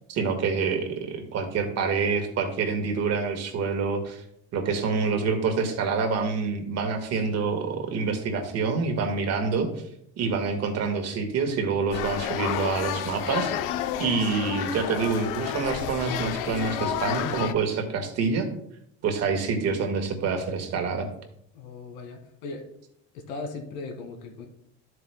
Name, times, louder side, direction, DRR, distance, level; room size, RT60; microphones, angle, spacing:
voice 1, 0.1-4.2 4.5-9.7 10.2-13.5 14.0-18.5 19.0-21.1, right 5 dB, 45° right, 5 dB, 1.6 m, -27 dB
sound 1, 11.9-17.5, left 10 dB, 65° left, 0.7 m, -30 dB
voice 2, 21.5-22.6 23.1-24.5, left 3 dB, 85° left, 4 dB, 1.9 m, -38 dB
12.0 x 7.9 x 2.2 m, 0.71 s
cardioid pair, 145°, 34 cm